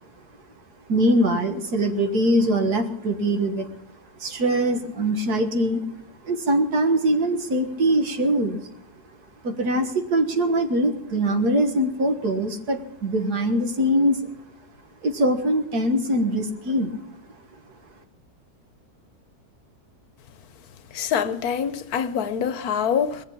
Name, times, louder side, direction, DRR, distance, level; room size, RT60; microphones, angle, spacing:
voice 1, 0.9-3.7 4.2-5.8 6.2-8.7 9.4-14.2 15.0-17.0, right 1 dB, 80° right, 2.1 m, -22 dB
voice 2, 20.9-23.2, left 8 dB, 70° left, 1.3 m, -25 dB
21.0 x 7.5 x 8.9 m
omnidirectional pair, 1.7 m